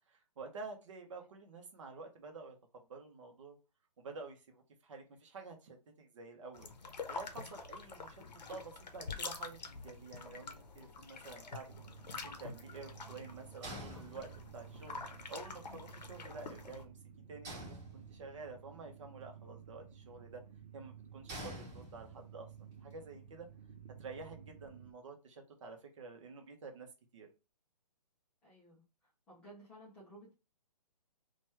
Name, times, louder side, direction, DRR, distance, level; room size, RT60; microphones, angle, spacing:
voice 1, 0.1-3.6 4.0-6.7 7.1-11.7 12.2-15.0 15.3-16.9 17.3-20.4 20.7-23.5 24.0-26.9 27.1-27.3, right 4 dB, 50° right, 4 dB, 0.8 m, -50 dB
sound 1, 6.5-16.8, left 4 dB, 85° left, 0.7 m, -47 dB
sound 2, 11.7-24.9, right 8 dB, 80° right, 0.6 m, -54 dB
sound 3, 13.6-14.7 17.4-18.5 21.3-22.4, equal, 20° right, 1.2 m, -47 dB
voice 2, 28.4-30.3, right 1 dB, 5° left, -9 dB, 0.4 m, -57 dB
2.9 x 2.3 x 3.0 m, 0.28 s
hypercardioid pair, 160°, 21 cm